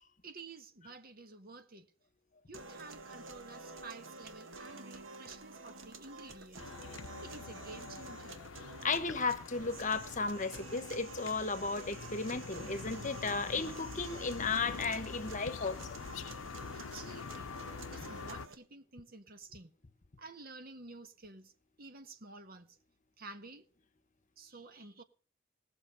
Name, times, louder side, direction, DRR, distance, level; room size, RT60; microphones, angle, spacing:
voice 1, 0.2-1.9 2.5-6.7 7.2-8.4 16.7-17.6 17.9-19.7 20.2-21.5 21.8-22.8 23.2-23.6 24.4-25.0, right 3 dB, 50° right, 1.4 m, -51 dB
sound 1, 2.5-18.5, right 3 dB, 90° right, 1.9 m, -49 dB
sound 2, 6.6-18.5, left 5 dB, 90° left, 0.6 m, -46 dB
voice 2, 8.8-16.0, left 4 dB, 40° left, 1.2 m, -35 dB
19.0 x 6.9 x 6.9 m
head